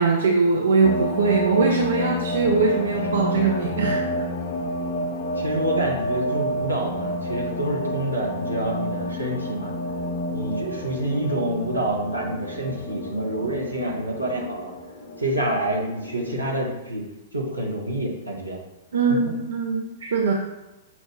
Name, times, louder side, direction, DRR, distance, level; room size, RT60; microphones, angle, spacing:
voice 1, 0.0-4.2 18.9-20.3, right 4 dB, 65° right, 0 dB, 0.5 m, -21 dB
sound 1, 0.8-16.8, equal, 45° left, 0.6 m, -29 dB
voice 2, 5.4-9.7 10.3-14.7 15.2-17.0 17.3-18.6 19.3-19.4, right 1 dB, 90° right, -1 dB, 0.9 m, -27 dB
5.9 x 2.4 x 3.7 m, 0.96 s
figure-of-eight pair, 105°, 0 cm